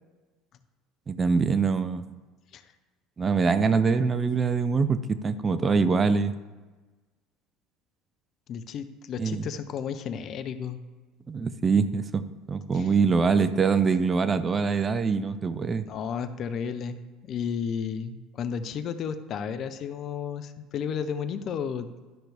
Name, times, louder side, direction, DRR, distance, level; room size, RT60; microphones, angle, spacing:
voice 1, 1.1-2.1 3.2-6.3 9.2-9.4 11.3-15.8, right 5 dB, 30° right, 12 dB, 0.6 m, -24 dB
voice 2, 8.5-10.8 12.7-12.9 15.9-21.9, left 7 dB, 50° left, 11 dB, 0.7 m, -33 dB
12.0 x 5.8 x 3.4 m, 1.3 s
hypercardioid pair, 70°, 0 cm